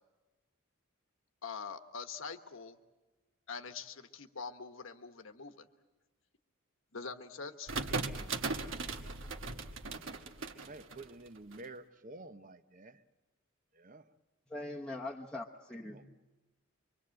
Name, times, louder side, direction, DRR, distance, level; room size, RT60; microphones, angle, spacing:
voice 1, 1.4-2.8 3.5-5.7 6.9-8.0, left 5 dB, 65° left, 1.3 m, -44 dB
sound 1, 7.7-11.6, right 3 dB, 65° right, 1.3 m, -38 dB
voice 2, 10.6-13.0 13.8-14.0 15.9-16.1, right 2 dB, 40° right, 0.8 m, -50 dB
voice 3, 14.5-16.1, left 2 dB, 5° left, 1.0 m, -42 dB
25.0 x 24.5 x 7.8 m
head